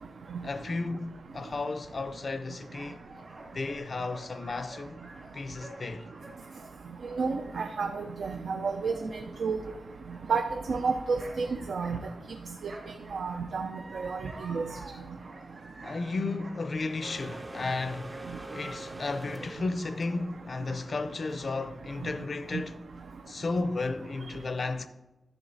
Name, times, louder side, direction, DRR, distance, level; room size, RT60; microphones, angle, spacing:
voice 1, 0.4-3.0 3.5-5.0 5.3-6.1 15.8-18.2 18.5-22.7 23.3-24.9, left 3 dB, 40° left, 0.5 m, -33 dB
sound 1, 1.4-12.4 12.7-18.8, right 2 dB, 45° right, 1.6 m, -50 dB
voice 2, 7.1-9.6 10.3-12.0 13.1-13.7 13.9-14.7, right 4 dB, 80° right, 0.5 m, -31 dB
sound 2, 17.0-23.6, right 2 dB, 20° right, 0.4 m, -45 dB
11.5 x 7.2 x 4.0 m
wide cardioid pair, 165°, 0 cm